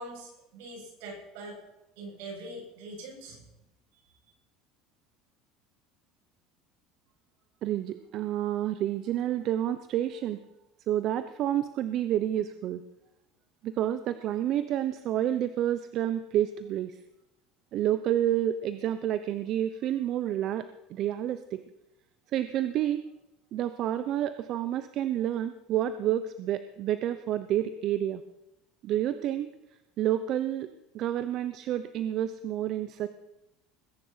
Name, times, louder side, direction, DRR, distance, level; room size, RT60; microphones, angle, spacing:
voice 1, 0.0-1.6 2.0-3.4, right 1 dB, 75° right, 0 dB, 7.6 m, -43 dB
voice 2, 7.6-10.4 10.9-12.8 13.6-17.0 17.7-21.6 22.3-23.0 23.5-28.2 28.8-29.5 30.0-30.7 30.9-33.1, right 11 dB, 50° right, 12 dB, 0.9 m, -29 dB
21.0 x 10.0 x 5.8 m, 0.87 s
supercardioid pair, 115°, 0 cm